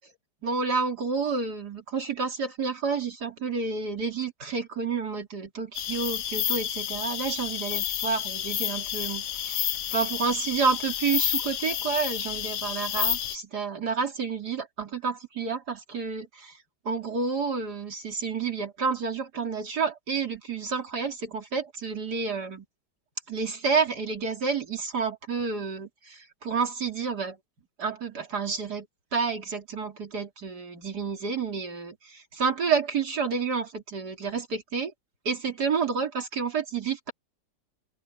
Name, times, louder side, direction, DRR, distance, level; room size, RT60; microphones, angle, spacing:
voice 1, 0.4-16.6 16.9-22.7 23.3-27.4 27.8-28.9 29.1-34.9 35.3-37.1, right 5 dB, 65° right, 3.7 m, -30 dB
sound 1, 5.7-13.4, left 10 dB, 60° left, 0.8 m, -30 dB
open air
omnidirectional pair, 1.9 m